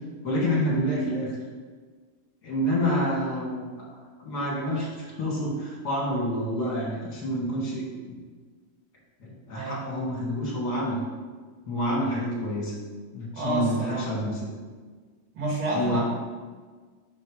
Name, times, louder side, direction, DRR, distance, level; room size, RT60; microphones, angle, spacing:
voice 1, 0.2-1.4 2.4-3.9 4.2-8.2 9.2-11.0 11.7-12.7 13.1-14.5 15.7-16.0, equal, 50° left, -5 dB, 2.3 m, -28 dB
voice 2, 13.3-14.3 15.3-16.0, right 2 dB, 65° right, -5 dB, 2.8 m, -29 dB
5.5 x 4.4 x 4.9 m, 1.5 s
omnidirectional pair, 2.4 m